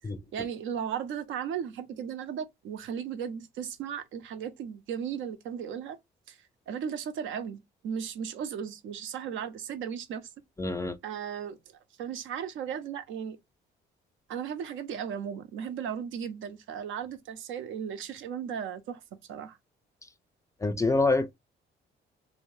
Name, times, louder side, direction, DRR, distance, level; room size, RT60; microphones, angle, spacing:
voice 1, 0.3-6.0 6.3-6.4 6.7-10.2 11.0-13.4 14.3-19.0 19.3-19.6, right 8 dB, 85° right, 0.5 m, -36 dB
voice 2, 10.6-11.0 20.6-21.3, left 3 dB, 15° left, 0.4 m, -26 dB
2.6 x 2.0 x 3.0 m
cardioid pair, 90°, 20 cm